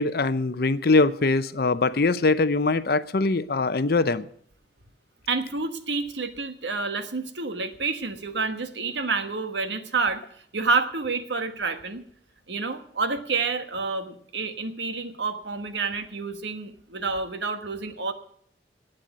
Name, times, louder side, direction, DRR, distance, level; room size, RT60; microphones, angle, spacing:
voice 1, 0.0-4.3, left 3 dB, 55° left, 0.7 m, -22 dB
voice 2, 5.3-10.2 10.5-12.0 12.5-18.1, right 4 dB, 80° right, 1.3 m, -29 dB
11.5 x 9.0 x 9.2 m
head